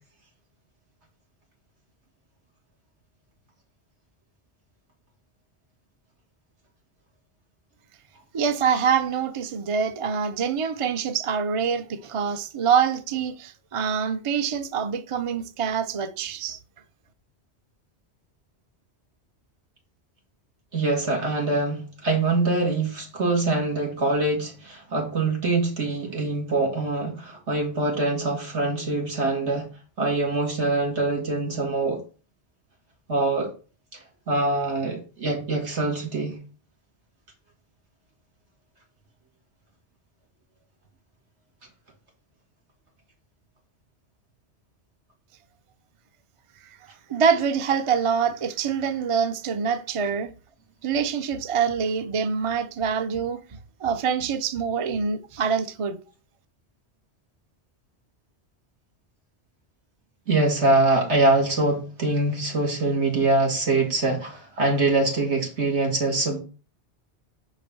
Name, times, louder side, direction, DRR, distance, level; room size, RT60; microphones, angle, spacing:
voice 1, 8.3-16.6 46.6-46.8 47.1-50.3 50.8-53.4 53.8-56.0, right 6 dB, 35° right, 0.6 m, -25 dB
voice 2, 20.7-29.7 30.0-32.0 33.1-33.5 33.9-34.0 34.3-36.4 60.3-66.4, right 2 dB, 75° right, 2.5 m, -24 dB
6.1 x 5.1 x 5.3 m
omnidirectional pair, 1.2 m